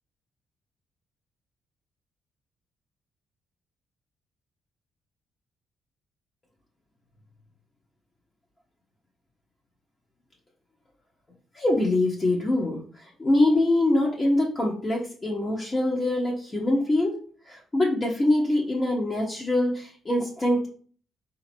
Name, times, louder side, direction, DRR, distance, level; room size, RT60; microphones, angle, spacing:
voice 1, 11.5-17.2 17.4-20.7, left 1 dB, 30° left, -3 dB, 1.1 m, -24 dB
4.1 x 2.8 x 4.4 m, 0.43 s
cardioid pair, 90°, 0 cm